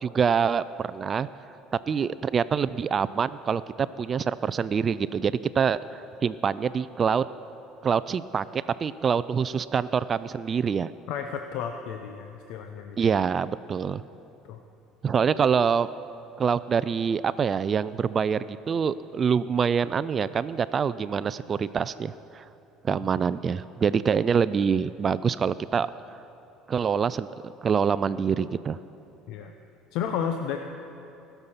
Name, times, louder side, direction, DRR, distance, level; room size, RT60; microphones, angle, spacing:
voice 1, 0.0-1.3 1.9-7.3 7.8-10.9 13.0-14.0 15.0-15.9 16.4-22.4 22.8-25.9 26.7-27.3 27.6-28.8, right 6 dB, 35° right, 16 dB, 0.3 m, -25 dB
voice 2, 11.1-13.1 14.5-14.6 29.3-29.5 29.9-30.6, left 8 dB, 70° left, 5 dB, 0.7 m, -32 dB
20.0 x 6.8 x 5.7 m, 2.8 s
supercardioid pair, 95°, 0 cm